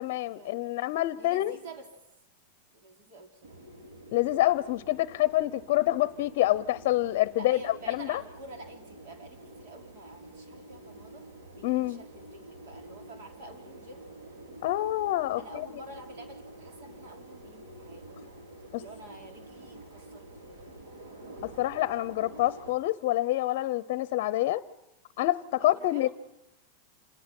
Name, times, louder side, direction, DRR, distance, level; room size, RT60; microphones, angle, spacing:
voice 1, 0.0-1.5 4.1-8.2 11.6-12.0 14.6-15.7 18.7-18.8 21.4-24.6 25.2-26.1, left 15 dB, 55° left, 16 dB, 0.7 m, -27 dB
voice 2, 1.1-1.9 2.7-3.6 7.4-14.1 15.3-18.4 18.8-20.6 25.6-26.1, right 2 dB, 65° right, 4 dB, 3.8 m, -48 dB
sound 1, 3.4-22.7, right 1 dB, 90° right, 5.3 m, -48 dB
27.0 x 19.5 x 6.0 m, 0.88 s
supercardioid pair, 150°, 0 cm